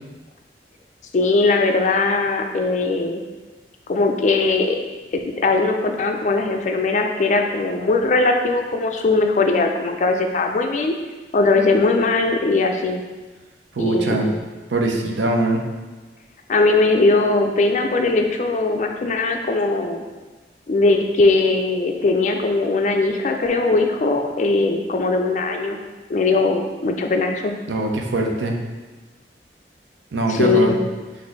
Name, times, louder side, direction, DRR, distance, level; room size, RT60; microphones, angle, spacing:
voice 1, 1.1-3.2 3.9-4.8 5.4-10.9 11.3-13.0 13.8-14.4 16.5-20.0 20.7-25.8 26.1-27.5 30.3-30.8, left 3 dB, 45° left, 4 dB, 0.4 m, -19 dB
voice 2, 13.8-14.3 14.7-15.6 27.7-28.6 30.1-30.8, right 2 dB, 90° right, 2 dB, 0.6 m, -21 dB
4.2 x 2.6 x 4.5 m, 1.3 s
head